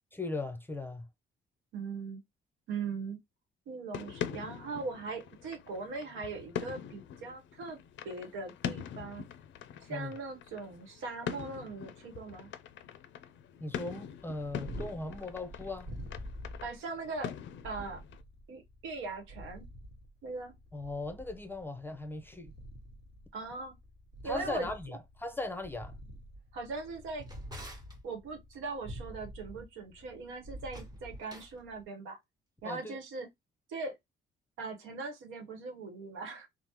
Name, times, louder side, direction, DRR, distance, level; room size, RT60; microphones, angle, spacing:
voice 1, 0.1-1.1 9.9-10.1 13.6-15.9 20.7-22.5 24.2-25.9 32.6-32.9, left 2 dB, 10° left, 0.5 m, -38 dB
voice 2, 1.7-2.2 2.7-3.2 3.7-7.8 8.0-9.2 9.8-12.5 16.6-17.3 17.6-18.0 18.5-19.6 20.2-20.5 23.3-23.7 24.2-25.0 26.5-27.3 28.0-32.2 32.6-33.3 33.7-34.0 34.6-36.5, right 4 dB, 90° right, 1.0 m, -40 dB
sound 1, 3.9-18.2, left 9 dB, 70° left, 0.4 m, -43 dB
Purr, 14.1-31.8, equal, 60° right, 1.1 m, -48 dB
Drawer open or close, 26.8-28.0 30.6-31.6, right 1 dB, 20° right, 0.9 m, -52 dB
3.3 x 2.0 x 2.9 m
cardioid pair, 90°, 20 cm